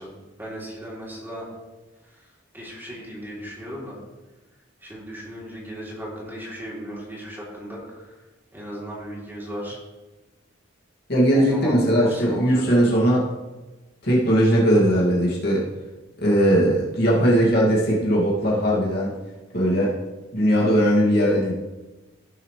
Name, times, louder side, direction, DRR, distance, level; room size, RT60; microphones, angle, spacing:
voice 1, 0.0-1.5 2.1-2.3 2.5-4.0 4.8-8.1 8.5-9.8 11.3-12.8, equal, 10° right, -6 dB, 3.5 m, -36 dB
voice 2, 11.1-13.3 14.0-15.7 16.2-19.1 19.5-20.0 20.3-21.5, equal, 55° left, -4 dB, 2.6 m, -19 dB
17.0 x 7.2 x 3.4 m, 1.1 s
head